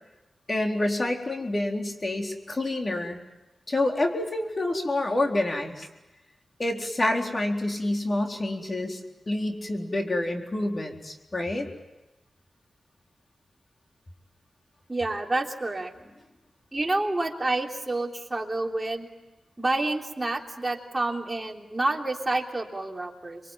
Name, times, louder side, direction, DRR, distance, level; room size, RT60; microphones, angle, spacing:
voice 1, 0.5-3.2 3.7-5.9 6.6-9.0 9.3-11.7, left 1 dB, 35° left, 3 dB, 4.0 m, -28 dB
voice 2, 14.9-15.9 16.7-19.1 19.6-23.4, right 2 dB, 20° right, 1 dB, 3.5 m, -28 dB
26.5 x 23.5 x 9.3 m, 1.0 s
cardioid pair, 65°, 0 cm